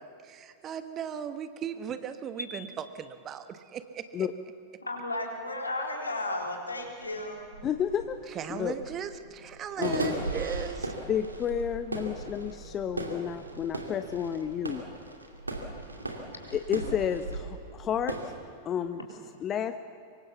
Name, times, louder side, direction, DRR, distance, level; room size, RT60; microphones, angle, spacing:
voice 1, 0.2-4.3 8.3-10.9, right 8 dB, 30° right, 10 dB, 1.4 m, -38 dB
voice 2, 4.9-7.4, left 2 dB, 80° left, 1 dB, 4.0 m, -34 dB
sound 1, 6.4-6.5 6.8-18.3, right 2 dB, 80° right, 2.5 m, -37 dB
voice 3, 7.6-8.8 9.8-10.2 11.1-14.8 16.5-18.2 18.6-19.0 19.4-19.8, left 8 dB, 30° left, 10 dB, 0.8 m, -31 dB
25.0 x 23.5 x 7.1 m, 2.5 s
figure-of-eight pair, 90°, 0 cm